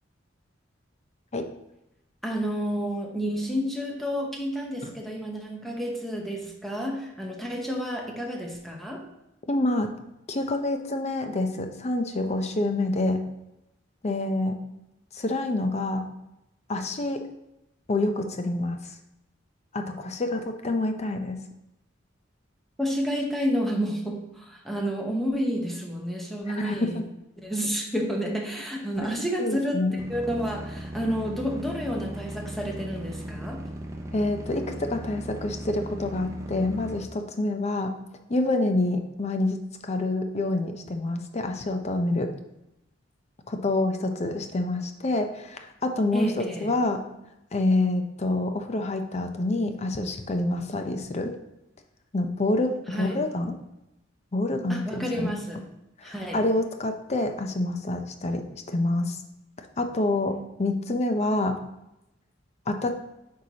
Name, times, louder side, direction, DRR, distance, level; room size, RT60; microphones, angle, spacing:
voice 1, 2.2-9.0 22.8-27.0 27.4-33.6 46.1-46.7 52.9-53.2 54.7-55.6 56.0-56.4, equal, ahead, -1 dB, 1.0 m, -30 dB
voice 2, 9.5-9.9 10.3-13.2 14.0-14.6 15.1-16.0 16.7-17.2 17.9-18.9 19.7-21.4 26.6-27.0 29.4-29.9 34.1-37.9 38.3-39.6 39.8-42.3 43.5-47.0 47.5-51.3 52.1-52.7 53.0-53.5 54.3-55.3 56.0-59.2 59.8-61.5 62.7-63.0, left 2 dB, 35° left, 6 dB, 0.6 m, -27 dB
sound 1, 30.0-37.0, right 1 dB, 15° right, 0.6 m, -37 dB
8.1 x 4.7 x 2.8 m, 0.90 s
head